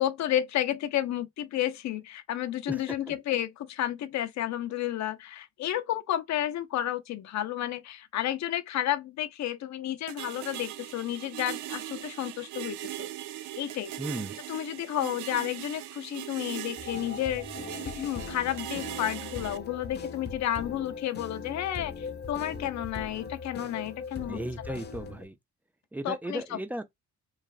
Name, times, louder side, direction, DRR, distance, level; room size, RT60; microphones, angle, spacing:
voice 1, 0.0-13.1 13.6-13.9 14.5-17.5 17.8-24.8 26.0-26.8, left 12 dB, 65° left, 0.6 m, -31 dB
sound 1, 10.1-19.6, right 14 dB, 80° right, 0.5 m, -40 dB
voice 2, 14.0-14.4 24.3-25.3 25.9-26.8, right 1 dB, 5° right, 0.4 m, -35 dB
sound 2, 16.8-25.2, left 5 dB, 35° left, 0.7 m, -40 dB
3.2 x 2.3 x 2.4 m
cardioid pair, 90°, 30 cm